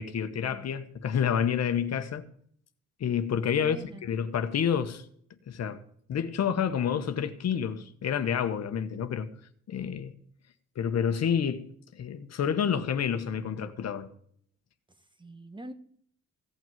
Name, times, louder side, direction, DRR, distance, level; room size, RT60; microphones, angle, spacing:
voice 1, 0.0-2.3 3.0-3.8 4.1-5.0 5.5-5.8 6.1-9.3 9.7-10.1 10.8-14.1, left 8 dB, 60° left, 1.2 m, -29 dB
voice 2, 3.5-4.2 15.0-15.7, right 1 dB, 15° right, 1.3 m, -45 dB
16.5 x 6.1 x 9.1 m
cardioid pair, 90°, 30 cm